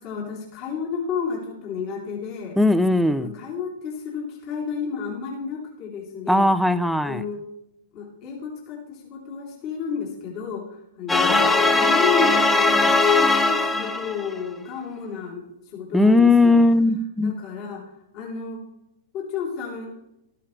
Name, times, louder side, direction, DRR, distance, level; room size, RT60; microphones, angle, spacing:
voice 1, 0.0-2.6 3.1-6.5 7.0-7.4 7.9-16.7 17.2-17.8 18.1-18.6 19.1-19.9, left 6 dB, 45° left, -2 dB, 3.5 m, -32 dB
voice 2, 2.6-3.3 6.3-7.2 15.9-17.3, left 2 dB, ahead, 13 dB, 0.5 m, -18 dB
sound 1, 11.1-14.4, left 3 dB, 15° left, 1.4 m, -19 dB
13.5 x 11.0 x 3.3 m, 0.85 s
hypercardioid pair, 105°, 0 cm